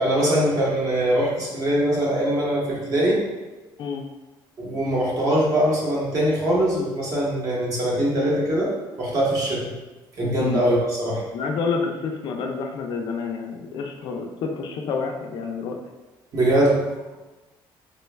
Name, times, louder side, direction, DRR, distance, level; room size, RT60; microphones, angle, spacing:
voice 1, 0.0-3.2 4.6-8.7 9.0-9.7 10.2-11.2 16.3-16.8, right 1 dB, 40° right, -4 dB, 0.9 m, -22 dB
voice 2, 11.3-15.8, left 5 dB, 55° left, 2 dB, 0.4 m, -28 dB
3.2 x 2.2 x 3.1 m, 1.1 s
cardioid pair, 165°, 9 cm